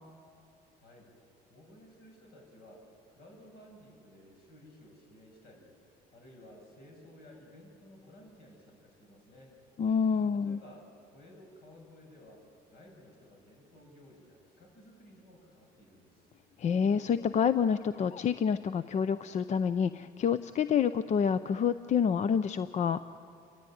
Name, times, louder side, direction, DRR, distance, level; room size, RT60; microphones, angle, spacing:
voice 1, 0.7-1.1 1.5-9.5 10.3-16.3, left 1 dB, 70° left, 0 dB, 7.9 m, -55 dB
voice 2, 9.8-10.6 16.6-23.0, left 7 dB, 45° left, 13 dB, 0.6 m, -28 dB
28.5 x 13.5 x 9.4 m, 2.4 s
cardioid pair, 110°, 17 cm